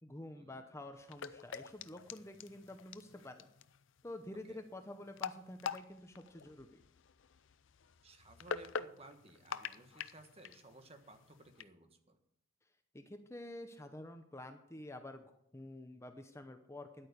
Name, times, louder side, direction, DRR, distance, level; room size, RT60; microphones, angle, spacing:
voice 1, 0.0-3.5 4.0-6.8 12.9-17.1, left 1 dB, 15° left, 7 dB, 0.7 m, -49 dB
sound 1, 1.0-11.6, left 6 dB, 65° left, 0.5 m, -46 dB
voice 2, 8.0-12.2, right 2 dB, 30° right, 7 dB, 1.2 m, -58 dB
10.5 x 8.8 x 6.7 m, 0.74 s
head